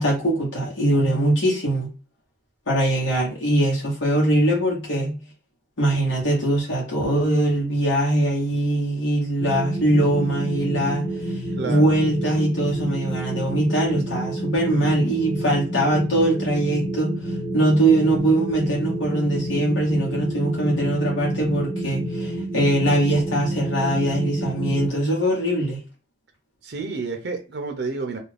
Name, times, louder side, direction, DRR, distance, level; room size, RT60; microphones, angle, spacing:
voice 1, 0.0-1.9 2.7-5.1 5.8-25.8, right 1 dB, 85° left, 1.0 m, -22 dB
sound 1, 9.4-24.9, right 1 dB, 5° left, 0.5 m, -29 dB
voice 2, 11.6-11.9 26.6-28.2, right 4 dB, 65° right, 0.5 m, -30 dB
2.4 x 2.3 x 3.2 m
head